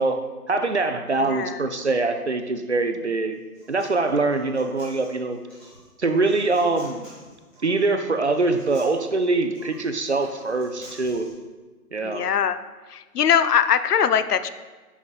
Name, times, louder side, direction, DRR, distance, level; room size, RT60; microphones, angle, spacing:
voice 1, 0.0-3.4 3.7-5.4 6.0-7.1 7.6-11.3 11.9-12.3, right 3 dB, 50° right, 7 dB, 0.4 m, -23 dB
voice 2, 1.2-1.6 12.0-12.6 12.9-14.5, left 8 dB, 80° left, 12 dB, 0.6 m, -21 dB
Human voice, 3.3-11.3, equal, 5° left, 1.2 m, -50 dB
10.0 x 5.6 x 2.4 m, 1.3 s
hypercardioid pair, 165°, 47 cm